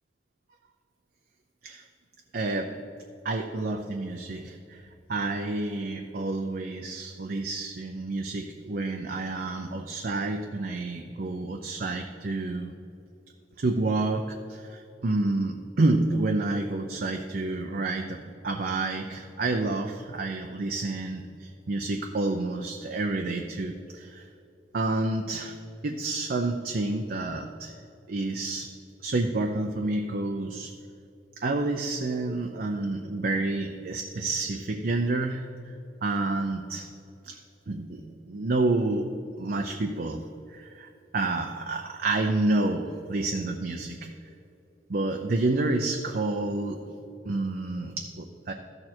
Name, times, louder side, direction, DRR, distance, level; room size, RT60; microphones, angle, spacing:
voice 1, 2.3-2.7 3.2-4.8 5.1-12.7 13.6-18.2 18.4-24.2 24.7-25.5 25.8-27.7 28.1-28.7 29.0-30.7 31.4-35.5 36.0-36.9 37.2-37.4 37.7-39.1 39.4-40.2 40.5-44.1 44.9-46.8 47.3-48.5, right 2 dB, 55° right, 3 dB, 0.6 m, -29 dB
14.0 x 6.5 x 4.4 m, 2.8 s
head